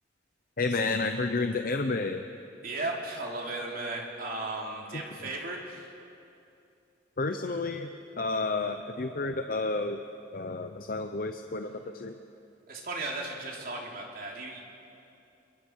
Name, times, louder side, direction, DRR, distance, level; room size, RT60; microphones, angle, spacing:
voice 1, 0.6-2.3 4.9-5.0 7.2-10.0 10.3-12.2, left 3 dB, 50° left, 6 dB, 0.7 m, -31 dB
voice 2, 2.6-5.9 12.7-14.6, right 2 dB, 50° right, -1 dB, 3.2 m, -36 dB
26.0 x 23.0 x 4.7 m, 2.7 s
head